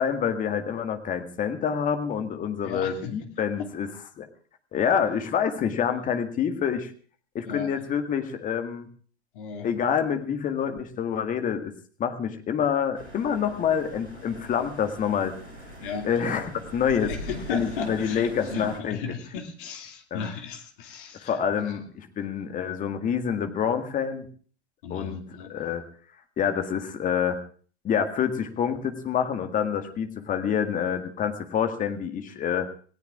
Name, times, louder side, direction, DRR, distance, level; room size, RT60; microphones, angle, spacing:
voice 1, 0.0-3.9 4.2-4.3 4.7-6.9 7.3-8.9 9.6-11.7 12.0-15.3 16.0-17.1 17.5-19.0 20.1-20.3 21.2-24.2 24.9-25.2 25.5-25.8 26.4-27.4 27.8-32.7, left 7 dB, 25° left, 6 dB, 1.9 m, -27 dB
voice 2, 2.6-3.1 7.4-7.7 9.3-9.7 15.8-16.2 17.0-21.4 21.6-21.8 24.8-25.5, left 5 dB, 50° left, 4 dB, 2.5 m, -35 dB
sound 1, 12.9-18.8, equal, 85° left, 4.9 m, -41 dB
27.5 x 18.5 x 2.5 m, 0.44 s
figure-of-eight pair, 90°, 32 cm